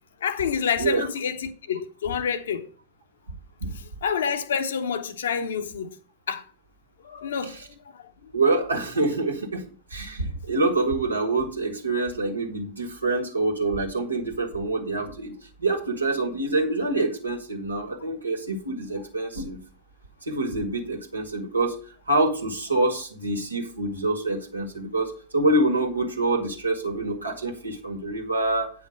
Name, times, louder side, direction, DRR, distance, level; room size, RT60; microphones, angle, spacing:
voice 1, 0.2-2.7 3.7-5.9 6.3-6.4 7.0-7.6 7.9-8.1, left 7 dB, 65° left, 0.9 m, -28 dB
voice 2, 8.3-9.7 9.9-15.3 15.6-19.6 20.2-21.8 22.1-28.7, right 2 dB, 80° right, 1.8 m, -26 dB
9.1 x 5.9 x 5.1 m
figure-of-eight pair, 90°, 0 cm